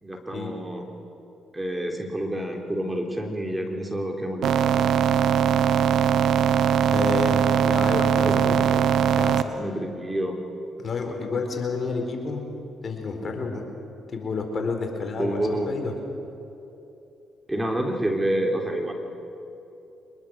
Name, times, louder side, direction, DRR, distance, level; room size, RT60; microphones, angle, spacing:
voice 1, 0.0-0.8 1.5-4.5 8.2-8.8 9.6-10.4 15.2-15.7 17.5-18.9, right 1 dB, 15° right, 2 dB, 3.6 m, -28 dB
sound 1, 4.4-9.4, right 8 dB, 65° right, 1.0 m, -21 dB
voice 2, 6.9-8.6 9.2-9.4 10.8-12.5 12.8-13.6 14.1-15.9, left 4 dB, 45° left, 3 dB, 4.3 m, -30 dB
24.5 x 21.5 x 6.5 m, 2.9 s
hypercardioid pair, 50°, 0 cm